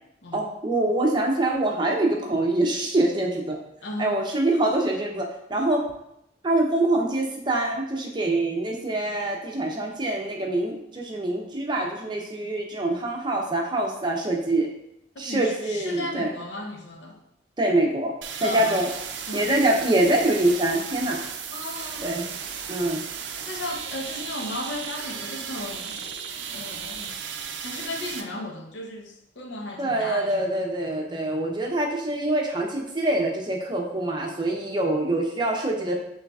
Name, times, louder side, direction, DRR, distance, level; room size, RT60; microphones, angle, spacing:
voice 1, 0.3-3.6 4.0-5.8 6.4-14.7 15.2-16.3 17.6-18.1 18.4-18.9 19.3-21.2 22.0-22.2 22.7-23.0 29.8-35.9, right 2 dB, 25° right, 0 dB, 0.6 m, -24 dB
voice 2, 3.8-4.2 15.2-17.2 18.4-18.8 19.3-19.5 21.5-22.1 23.4-26.0 26.5-27.2 27.6-30.5, left 1 dB, 80° left, 3 dB, 0.7 m, -35 dB
sound 1, 18.2-28.2, right 7 dB, 80° right, 0.4 m, -35 dB
6.6 x 3.2 x 2.3 m, 0.81 s
head